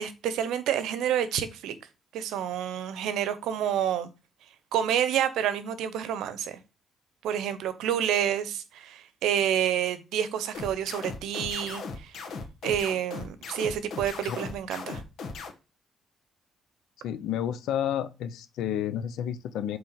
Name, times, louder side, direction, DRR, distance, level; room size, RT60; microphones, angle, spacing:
voice 1, 0.0-1.8 2.1-4.1 4.7-6.6 7.2-12.1 12.6-15.0, right 9 dB, 85° right, 0.8 m, -28 dB
sound 1, 10.5-15.5, left 4 dB, 70° left, 1.3 m, -37 dB
voice 2, 17.0-19.8, left 10 dB, 85° left, 0.7 m, -30 dB
7.8 x 3.4 x 4.4 m
cardioid pair, 90°, 0 cm